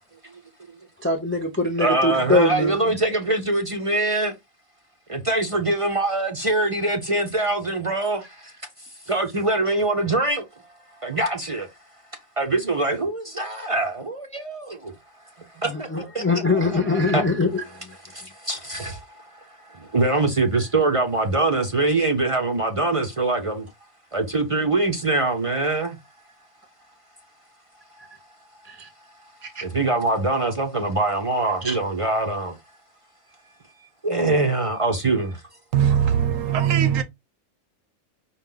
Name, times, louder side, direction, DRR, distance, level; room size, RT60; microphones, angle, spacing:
voice 1, 1.0-2.9 15.6-17.9 28.6-28.9 29.5-29.6 31.6-31.8, left 2 dB, 15° left, 0.5 m, -23 dB
voice 2, 1.8-4.3 5.1-8.2 9.1-10.4 11.0-11.7 12.4-14.9 15.6-16.6 17.1-17.2 18.5-19.0 19.9-23.6 24.1-25.9 29.6-32.5 34.0-35.4, right 2 dB, 40° right, 0.5 m, -23 dB
voice 3, 35.7-37.0, right 9 dB, 85° right, 1.1 m, -20 dB
5.2 x 2.3 x 3.7 m
omnidirectional pair, 1.3 m